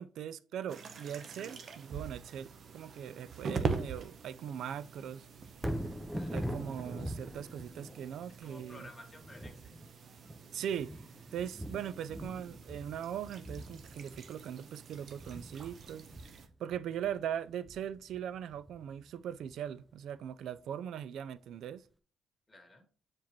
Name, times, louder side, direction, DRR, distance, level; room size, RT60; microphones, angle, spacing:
voice 1, 0.0-5.3 6.3-8.8 10.5-10.9 11.3-16.1 16.6-21.8, right 9 dB, 75° right, 0.4 m, -40 dB
sound 1, 0.7-16.5, right 5 dB, 55° right, 0.8 m, -44 dB
Thunder, 5.5-19.7 20.2-20.3, equal, 5° right, 0.7 m, -43 dB
voice 2, 6.1-6.5 8.4-9.7 22.5-22.8, left 1 dB, 15° left, 2.0 m, -53 dB
7.3 x 4.5 x 3.0 m
cardioid pair, 90°, 0 cm